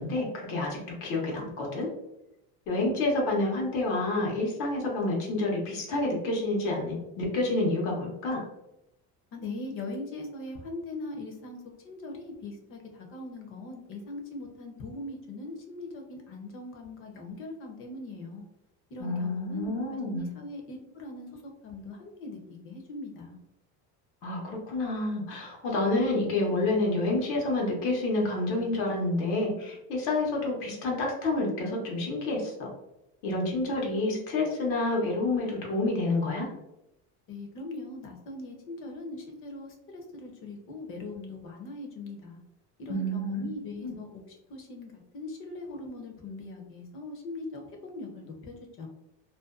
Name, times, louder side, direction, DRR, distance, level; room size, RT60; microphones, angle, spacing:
voice 1, 0.0-1.9 2.7-8.4 19.0-20.3 24.2-32.7 33.2-36.5 42.9-43.4 43.8-43.9, left 2 dB, 90° left, -1 dB, 0.9 m, -28 dB
voice 2, 9.3-11.6 11.8-18.5 18.9-22.4 22.6-23.4 37.3-42.4 42.8-44.2 44.5-48.9, left 2 dB, 45° left, 2 dB, 0.6 m, -40 dB
2.5 x 2.2 x 2.3 m, 0.89 s
cardioid pair, 150°, 31 cm